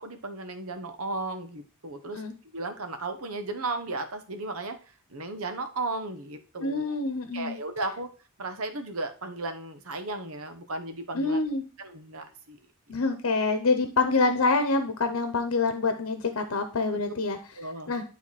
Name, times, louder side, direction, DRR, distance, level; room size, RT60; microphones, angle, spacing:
voice 1, 0.0-4.8 5.1-7.0 7.3-8.1 8.4-11.4 11.8-12.6 16.9-17.0 17.6-17.9, right 2 dB, 90° right, 7 dB, 1.2 m, -35 dB
voice 2, 6.6-7.6 11.1-11.6 12.9-17.4 17.9-18.0, left 3 dB, 85° left, 8 dB, 0.9 m, -26 dB
9.9 x 4.1 x 4.2 m, 0.36 s
head